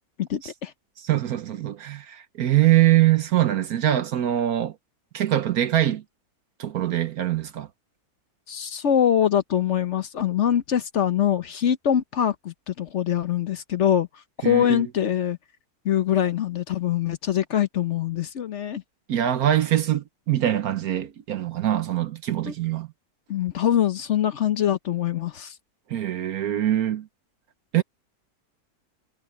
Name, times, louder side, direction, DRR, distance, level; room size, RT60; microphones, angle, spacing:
voice 1, 0.2-0.7 8.5-14.1 14.4-15.4 15.8-18.8 22.4-22.5 23.3-25.5, left 10 dB, 55° left, 1.0 m, -23 dB
voice 2, 1.0-4.8 5.1-6.0 6.6-7.7 14.4-14.8 19.1-22.9 25.9-27.1 27.7-27.8, right 13 dB, 70° right, 1.3 m, -23 dB
omnidirectional pair, 1.7 m